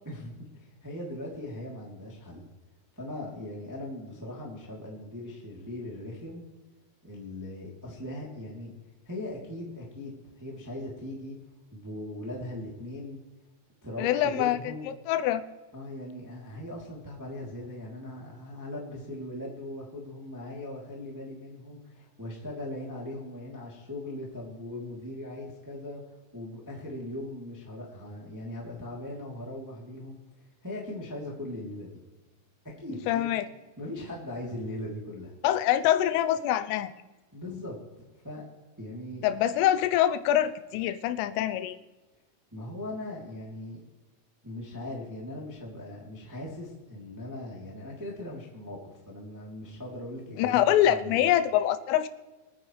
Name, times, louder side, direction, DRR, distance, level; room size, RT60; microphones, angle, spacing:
voice 1, 0.0-2.4 2.9-6.5 7.0-8.7 9.0-11.4 11.7-13.2 13.8-14.9 15.7-26.0 26.3-30.2 30.6-32.0 32.8-33.4 33.8-35.3 37.3-37.8 38.2-38.4 38.8-39.2 42.5-43.8 44.4-51.3, left 1 dB, 10° right, -3 dB, 1.2 m, -39 dB
voice 2, 14.0-14.6 15.1-15.4 33.1-33.5 35.4-36.9 39.2-41.8 50.4-52.1, left 12 dB, 90° left, 11 dB, 3.3 m, -24 dB
26.5 x 9.6 x 3.3 m, 1.2 s
omnidirectional pair, 5.8 m